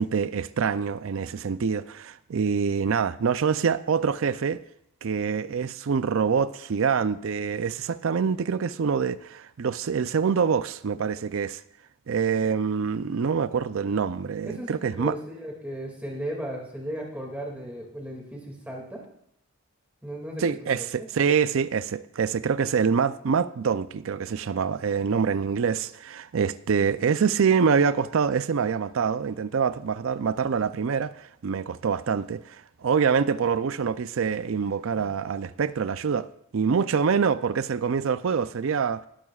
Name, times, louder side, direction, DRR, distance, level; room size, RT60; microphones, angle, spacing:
voice 1, 0.0-4.6 5.0-11.6 12.1-15.1 20.4-36.3 36.5-39.0, right 6 dB, 65° right, 0.4 m, -25 dB
voice 2, 14.5-19.0 20.0-20.9, right 1 dB, 5° right, 2.2 m, -36 dB
19.0 x 12.0 x 2.4 m
head